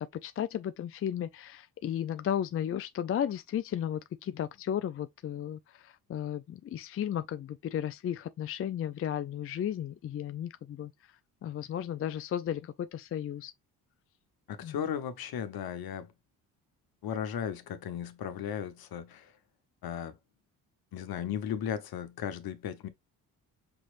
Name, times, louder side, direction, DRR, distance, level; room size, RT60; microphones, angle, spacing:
voice 1, 0.0-10.9 11.4-13.5 14.6-14.9, left 10 dB, 35° left, 0.4 m, -34 dB
voice 2, 14.5-16.1 17.0-19.3 19.8-20.2 20.9-22.9, left 9 dB, 60° left, 1.0 m, -36 dB
5.9 x 3.0 x 2.5 m
supercardioid pair, 60°, 41 cm